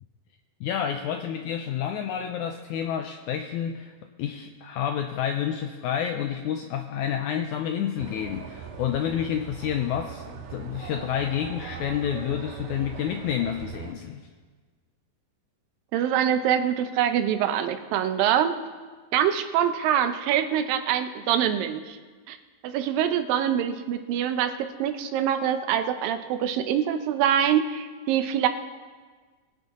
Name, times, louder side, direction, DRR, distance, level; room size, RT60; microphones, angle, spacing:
voice 1, 0.6-3.9 4.2-14.3, left 9 dB, 85° left, 6 dB, 1.7 m, -29 dB
sound 1, 8.0-13.9, right 7 dB, 65° right, 2.2 m, -40 dB
voice 2, 15.9-18.6 19.1-22.0 22.3-22.4 22.6-28.5, right 9 dB, 85° right, 8 dB, 2.5 m, -24 dB
22.5 x 8.1 x 4.1 m, 1.5 s
omnidirectional pair, 4.0 m